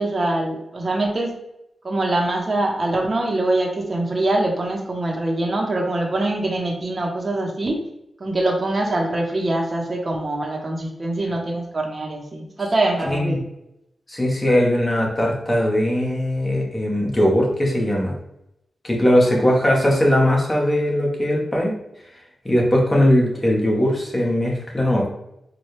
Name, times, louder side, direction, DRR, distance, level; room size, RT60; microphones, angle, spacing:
voice 1, 0.0-1.3 1.8-7.8 8.2-13.5 19.3-19.5, right 2 dB, 40° right, 0 dB, 0.7 m, -23 dB
voice 2, 13.1-13.4 14.1-18.2 18.8-21.7 22.4-25.1, left 1 dB, 20° left, -2 dB, 1.1 m, -19 dB
4.2 x 2.2 x 3.2 m, 0.84 s
cardioid pair, 60°, 0 cm